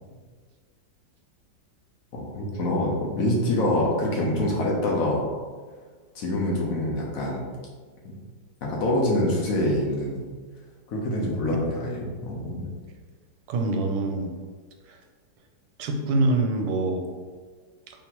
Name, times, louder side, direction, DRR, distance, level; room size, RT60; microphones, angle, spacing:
voice 1, 2.1-5.3 6.1-7.5 8.0-8.1 8.6-10.2 10.9-12.7, left 1 dB, 60° left, -3 dB, 1.1 m, -25 dB
voice 2, 13.5-14.3 14.9-15.0 15.8-17.1, right 2 dB, 75° right, 3 dB, 1.2 m, -25 dB
4.2 x 3.4 x 2.9 m, 1.5 s
omnidirectional pair, 2.0 m